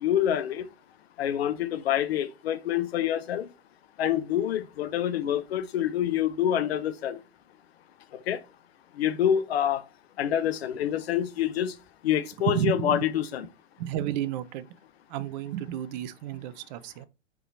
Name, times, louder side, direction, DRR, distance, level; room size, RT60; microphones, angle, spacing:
voice 1, 0.0-0.6 1.2-3.5 4.0-7.2 8.3-8.4 9.0-9.8 10.2-11.7 12.0-13.5, left 10 dB, 60° left, 0.8 m, -26 dB
voice 2, 12.4-13.0 13.8-14.7 15.1-17.1, right 11 dB, 40° right, 0.7 m, -31 dB
5.0 x 4.7 x 4.0 m
figure-of-eight pair, 105°, 35 cm